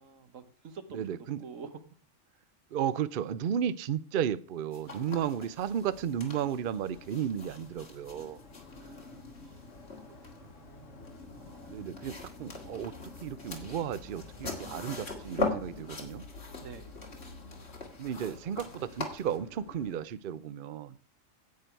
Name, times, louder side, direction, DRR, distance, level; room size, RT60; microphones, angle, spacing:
voice 1, 0.0-1.8 8.7-11.8 16.6-16.9 18.1-18.3, right 5 dB, 85° right, 10 dB, 1.5 m, -50 dB
voice 2, 0.9-1.4 2.7-8.4 11.7-12.9 13.2-16.2 18.0-21.0, right 9 dB, 55° right, 16 dB, 0.6 m, -34 dB
sound 1, 4.7-19.4, left 3 dB, 55° left, 2.4 m, -42 dB
sound 2, 5.0-20.1, left 3 dB, 75° left, 1.6 m, -50 dB
10.5 x 8.7 x 4.5 m, 0.41 s
omnidirectional pair, 1.3 m